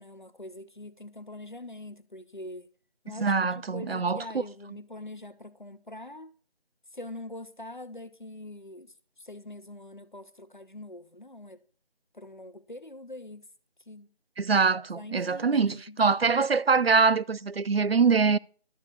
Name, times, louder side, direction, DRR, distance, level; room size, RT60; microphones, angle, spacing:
voice 1, 0.0-2.7 3.0-3.3 3.7-6.3 6.9-11.6 12.1-13.4 13.9-14.1 14.8-16.2, left 1 dB, 50° left, 0.8 m, -43 dB
voice 2, 3.2-4.2 14.4-18.4, right 5 dB, 70° right, 0.5 m, -24 dB
12.5 x 7.0 x 4.1 m
figure-of-eight pair, 175°, 32 cm